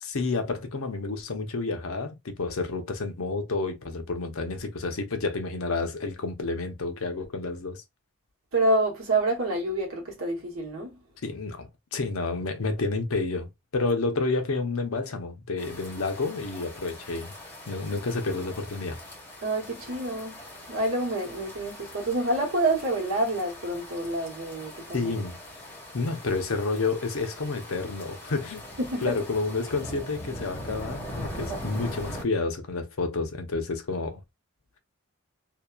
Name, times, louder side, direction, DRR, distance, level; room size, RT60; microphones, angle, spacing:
voice 1, 0.0-7.8 11.2-17.3 17.7-19.0 24.9-25.4 25.9-28.6 29.0-34.2, left 3 dB, 90° left, 0.7 m, -30 dB
voice 2, 8.5-11.0 19.4-20.4 20.7-25.1 28.8-29.2 31.5-31.6, right 2 dB, 90° right, 1.1 m, -27 dB
sound 1, 15.6-32.2, left 1 dB, 10° left, 1.4 m, -42 dB
2.8 x 2.2 x 2.3 m
head